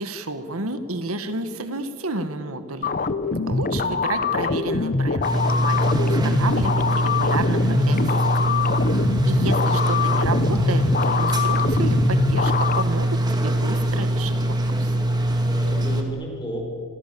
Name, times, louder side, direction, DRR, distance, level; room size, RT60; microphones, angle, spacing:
voice 1, 0.0-3.1 3.5-8.7 9.3-14.9, right 2 dB, 85° right, 9 dB, 1.8 m, -31 dB
sound 1, 2.8-12.8, left 4 dB, 40° left, 0.8 m, -23 dB
voice 2, 3.7-4.2 9.3-9.7 15.5-16.6, equal, 20° left, 1 dB, 5.0 m, -34 dB
sound 2, 5.2-16.0, right 1 dB, 20° right, 2.4 m, -23 dB
27.5 x 23.5 x 7.0 m, 2.4 s
head